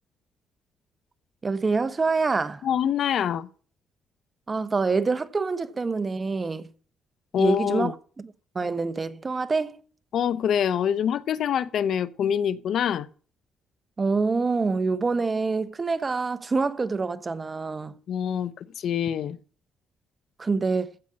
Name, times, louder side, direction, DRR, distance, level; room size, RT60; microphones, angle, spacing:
voice 1, 1.4-2.6 4.5-6.7 7.3-7.9 8.5-9.8 14.0-18.0 20.4-20.9, right 4 dB, 30° right, 1.1 m, -26 dB
voice 2, 2.6-3.5 7.3-7.9 10.1-13.1 18.1-19.4, left 8 dB, 70° left, 0.8 m, -25 dB
15.5 x 5.3 x 8.6 m
cardioid pair, 90°, 0 cm